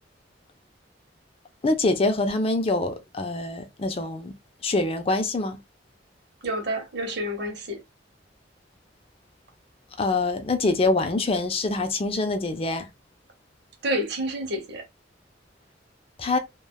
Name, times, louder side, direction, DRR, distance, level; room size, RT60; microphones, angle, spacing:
voice 1, 1.6-4.3 4.6-5.6 10.0-12.9 16.2-16.4, left 2 dB, 30° left, 0.4 m, -25 dB
voice 2, 6.4-7.8 13.8-14.8, equal, 60° right, 0.8 m, -29 dB
3.3 x 2.2 x 2.2 m
head